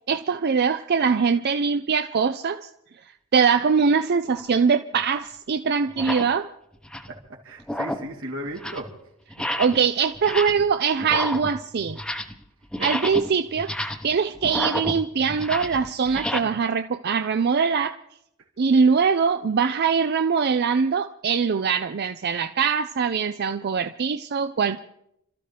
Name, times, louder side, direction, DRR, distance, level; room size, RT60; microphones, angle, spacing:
voice 1, 0.1-2.7 3.3-6.5 9.6-12.0 12.8-13.7 14.0-18.0 18.6-24.8, right 5 dB, 50° right, 9 dB, 0.5 m, -22 dB
sound 1, 4.3-4.5 5.2-5.3 5.9-6.3 6.7-7.2 7.6-8.1 8.5-8.9 9.3-9.9 10.1-10.7 11.0-12.4 12.7-16.4, left 1 dB, 5° left, 0.8 m, -31 dB
voice 2, 7.4-8.9 9.4-9.5 12.8-12.9 16.1-16.5, right 1 dB, 80° right, -1 dB, 3.1 m, -36 dB
30.0 x 13.5 x 3.4 m, 0.78 s
head